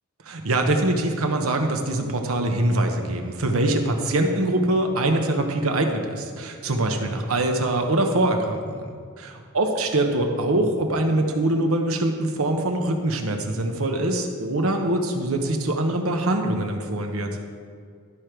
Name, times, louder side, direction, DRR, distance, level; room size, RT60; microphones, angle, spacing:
voice 1, 0.3-17.3, right 1 dB, 80° right, 4 dB, 1.0 m, -23 dB
12.5 x 5.0 x 4.6 m, 2.1 s
head